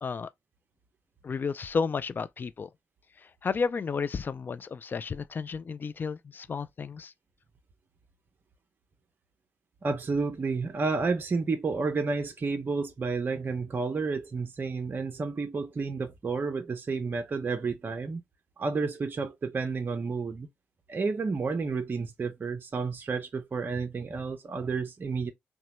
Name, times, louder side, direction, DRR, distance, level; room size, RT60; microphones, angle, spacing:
voice 1, 1.2-2.7 3.4-7.1, left 5 dB, 35° left, 0.3 m, -32 dB
voice 2, 9.8-18.2 18.6-20.5 20.9-25.3, right 4 dB, 35° right, 0.5 m, -31 dB
2.9 x 2.1 x 2.8 m
hypercardioid pair, 40°, 6 cm